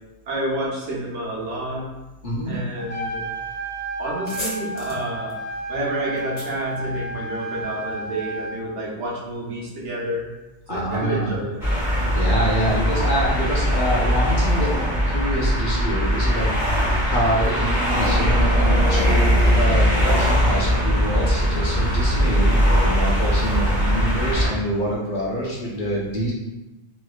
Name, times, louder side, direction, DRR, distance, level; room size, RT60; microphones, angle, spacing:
voice 1, 0.3-1.9 2.5-3.3 4.0-5.4 5.7-10.3 10.7-11.6, right 1 dB, 75° right, -4 dB, 1.1 m, -29 dB
voice 2, 2.2-2.6 10.7-11.4 12.1-16.7 17.0-26.3, equal, 50° left, -4 dB, 0.7 m, -26 dB
Trumpet, 2.8-8.6, right 2 dB, 75° left, 1.2 m, -32 dB
sound 1, 4.2-7.6, equal, 35° left, 1.1 m, -37 dB
sound 2, 11.6-24.5, equal, ahead, 1.1 m, -20 dB
3.1 x 2.9 x 2.3 m, 1.0 s
omnidirectional pair, 1.2 m